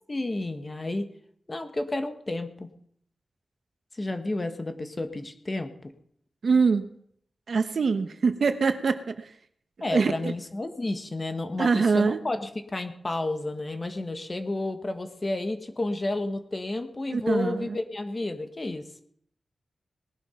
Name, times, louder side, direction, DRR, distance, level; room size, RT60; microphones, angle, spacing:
voice 1, 0.1-1.1 1.5-2.7 3.9-5.9 9.8-19.0, left 2 dB, 25° left, 7 dB, 1.4 m, -31 dB
voice 2, 6.4-6.9 7.5-9.3 9.9-10.3 11.6-12.2 17.1-17.8, right 5 dB, 60° right, 9 dB, 1.1 m, -24 dB
19.0 x 11.5 x 5.8 m, 0.68 s
wide cardioid pair, 160°, 0 cm